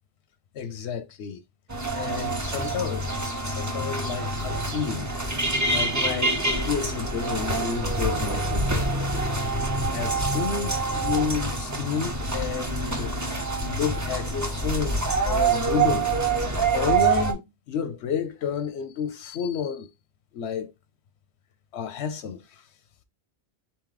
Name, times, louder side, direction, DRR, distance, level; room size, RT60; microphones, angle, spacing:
voice 1, 0.5-1.4 1.9-5.1 5.7-9.1 9.9-13.2 13.6-16.1 16.7-17.4 17.7-19.9 20.3-20.7 21.7-22.6, left 7 dB, 90° left, 0.9 m, -31 dB
sound 1, 1.7-17.3, right 3 dB, 20° right, 0.7 m, -26 dB
4.0 x 3.1 x 3.8 m
omnidirectional pair, 1.1 m